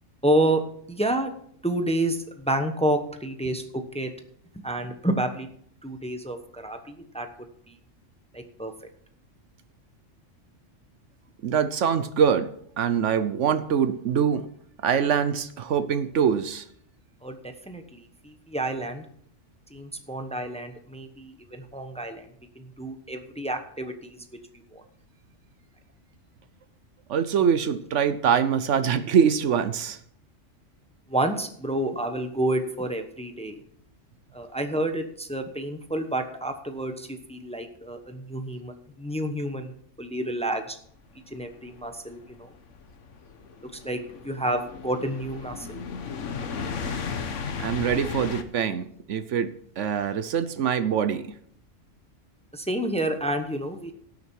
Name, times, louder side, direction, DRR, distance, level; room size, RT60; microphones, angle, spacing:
voice 1, 0.2-0.6 0.9-1.3 1.6-4.1 4.6-5.5 5.8-7.3 7.7-7.8 8.3-8.7 17.2-17.4 17.7-19.0 19.7-22.3 22.6-24.2 24.7-24.8 31.1-33.6 34.3-39.7 40.0-40.8 41.3-42.5 43.6-44.0 44.2-45.8 52.5-53.9, right 1 dB, 5° left, 6 dB, 0.9 m, -29 dB
voice 2, 11.4-14.5 14.8-16.6 27.1-30.0 47.6-51.3, right 7 dB, 70° right, 12 dB, 1.1 m, -24 dB
sound 1, 41.4-48.4, left 5 dB, 70° left, 1.3 m, -35 dB
17.5 x 6.7 x 4.6 m, 0.64 s
omnidirectional pair, 1.3 m